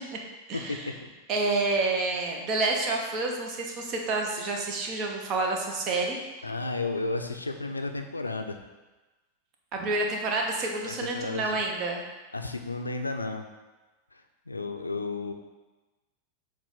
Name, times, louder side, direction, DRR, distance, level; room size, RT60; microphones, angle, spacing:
voice 1, 0.5-0.8 1.3-6.2 9.7-12.0, right 3 dB, 35° right, 1 dB, 1.0 m, -28 dB
voice 2, 6.4-8.6 10.8-11.6 12.3-13.5 14.1-15.3, left 3 dB, 80° left, 5 dB, 0.5 m, -33 dB
7.3 x 2.6 x 5.4 m, 1.2 s
figure-of-eight pair, 90°, 0 cm